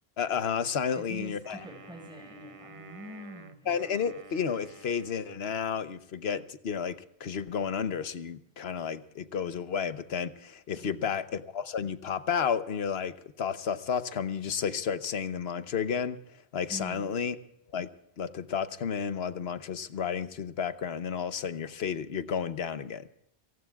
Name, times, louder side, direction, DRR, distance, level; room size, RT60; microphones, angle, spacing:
voice 1, 0.2-1.6 3.7-16.2 16.5-17.4 17.7-17.9 18.2-23.1, left 7 dB, 80° left, 12 dB, 1.1 m, -32 dB
voice 2, 0.9-3.8 10.8-11.1 16.7-17.1, equal, 5° right, 3 dB, 5.2 m, -44 dB
Wind instrument woodwind instrument, 1.4-5.9, right 3 dB, 35° right, 0.7 m, -51 dB
28.0 x 19.0 x 2.4 m, 0.79 s
omnidirectional pair, 1.0 m